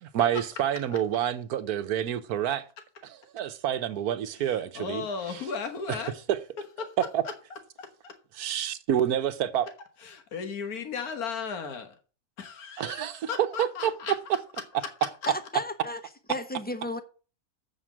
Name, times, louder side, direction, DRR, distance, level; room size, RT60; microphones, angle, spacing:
voice 1, 0.0-2.6 3.0-5.0 7.1-7.2 8.4-9.7 12.8-13.3 13.8-13.9, right 10 dB, 85° right, 1.3 m, -28 dB
voice 2, 4.4-6.1 6.8-7.3 7.8-8.1 10.0-11.9 12.4-14.1, left 5 dB, 75° left, 1.8 m, -36 dB
voice 3, 15.3-16.0 16.3-17.0, left 1 dB, 10° left, 0.6 m, -33 dB
7.7 x 5.9 x 7.3 m
omnidirectional pair, 1.6 m